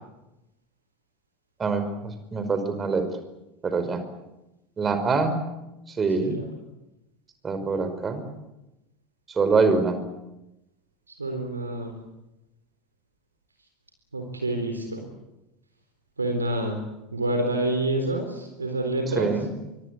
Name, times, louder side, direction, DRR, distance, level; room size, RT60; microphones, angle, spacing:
voice 1, 1.6-3.1 3.6-4.0 4.8-5.4 5.9-6.4 7.4-8.2 9.3-10.0 19.1-19.5, right 4 dB, 25° right, 9 dB, 5.2 m, -24 dB
voice 2, 11.2-11.9 14.1-15.0 16.2-16.8 17.1-19.3, right 1 dB, 85° right, 4 dB, 3.8 m, -27 dB
25.0 x 24.5 x 8.4 m, 0.94 s
figure-of-eight pair, 75°, 0 cm